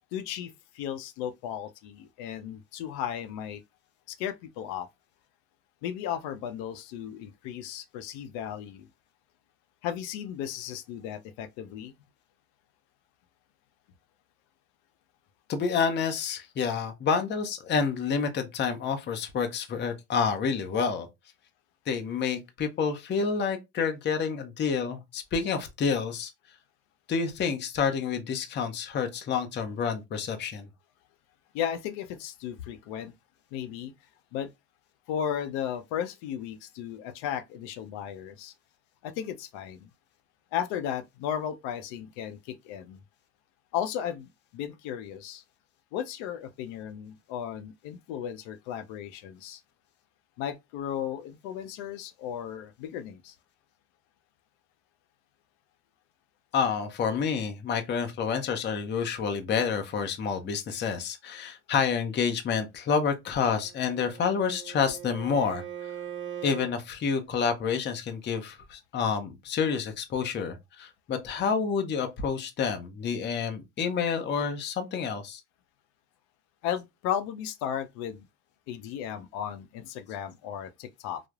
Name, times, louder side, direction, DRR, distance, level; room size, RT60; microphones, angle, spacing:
voice 1, 0.1-3.6 4.1-4.9 5.8-8.9 9.8-11.9 31.5-33.1 33.5-33.9 34.3-34.5 35.1-38.5 39.0-39.9 40.5-43.0 43.7-45.4 45.9-49.6 50.4-53.3 76.6-78.3 78.7-81.2, left 9 dB, 70° left, 0.6 m, -35 dB
voice 2, 15.5-21.1 21.9-26.3 27.1-30.7 56.5-65.6 66.4-75.4, left 6 dB, 25° left, 0.5 m, -29 dB
Bowed string instrument, 63.6-66.8, right 10 dB, 25° right, 1.1 m, -40 dB
3.1 x 2.0 x 2.3 m
supercardioid pair, 110°, 44 cm